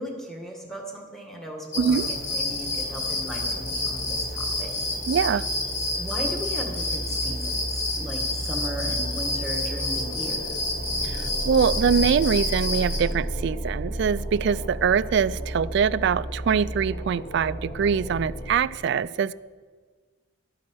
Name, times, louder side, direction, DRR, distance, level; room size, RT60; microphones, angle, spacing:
voice 1, 0.0-4.7 6.0-10.6, equal, ahead, 1 dB, 1.6 m, -36 dB
sound 1, 1.7-13.0, left 2 dB, 70° left, 2.6 m, -29 dB
sound 2, 1.7-18.6, right 1 dB, 50° left, 2.0 m, -34 dB
voice 2, 5.1-5.5 11.0-11.2 11.4-19.3, right 7 dB, 60° right, 17 dB, 0.3 m, -23 dB
12.0 x 8.6 x 6.2 m, 1.4 s
head